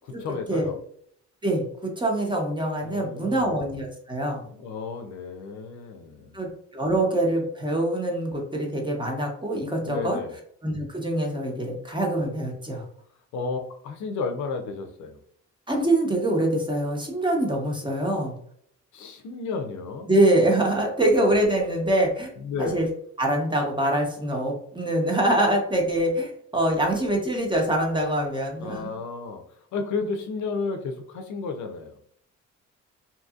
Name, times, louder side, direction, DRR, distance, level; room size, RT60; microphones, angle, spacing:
voice 1, 0.0-0.8 2.8-3.6 4.4-6.4 9.8-10.4 13.3-15.2 18.9-20.1 22.4-22.9 28.6-29.4 29.7-31.9, left 4 dB, 70° left, 5 dB, 0.5 m, -32 dB
voice 2, 1.4-4.4 6.3-10.2 10.6-12.8 15.7-18.3 20.1-22.3 22.6-22.9 23.2-28.9, right 1 dB, 15° right, 0 dB, 0.8 m, -24 dB
2.7 x 2.6 x 2.4 m, 0.65 s
cardioid pair, 90°, 30 cm